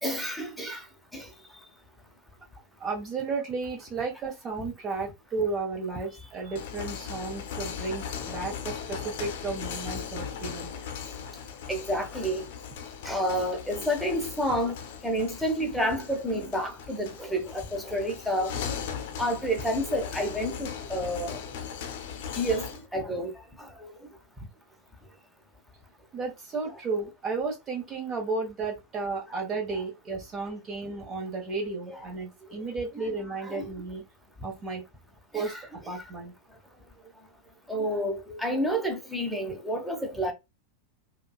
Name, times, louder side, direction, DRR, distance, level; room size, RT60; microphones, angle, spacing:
voice 1, 0.0-0.8 1.1-1.3 11.7-12.5 13.0-14.8 15.0-18.6 19.2-21.4 22.3-23.3 23.6-23.9 31.9-32.0 33.0-33.1 33.4-33.7 35.3-35.6 37.7-40.3, equal, ahead, 0.9 m, -29 dB
voice 2, 2.8-10.7 26.1-34.0 34.4-34.8 35.3-35.5 35.9-36.3, right 4 dB, 25° right, 1.2 m, -33 dB
sound 1, 6.4-22.8, left 7 dB, 50° left, 0.7 m, -38 dB
5.1 x 2.3 x 2.3 m
figure-of-eight pair, 90°, 0 cm